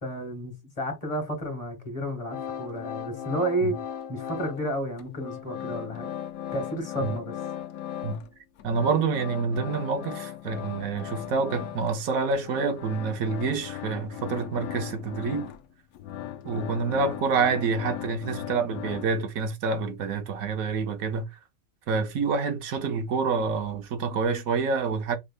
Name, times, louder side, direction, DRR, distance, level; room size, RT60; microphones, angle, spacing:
voice 1, 0.0-3.8 4.1-6.1 6.5-7.3, right 1 dB, 25° left, 1.9 m, -31 dB
sound 1, 2.3-4.7 5.0-8.3 8.6-19.5, left 10 dB, 75° left, 1.0 m, -37 dB
voice 2, 8.6-15.5 16.4-21.3 21.9-25.2, right 5 dB, 75° right, 1.2 m, -27 dB
5.5 x 3.2 x 2.3 m
omnidirectional pair, 1.5 m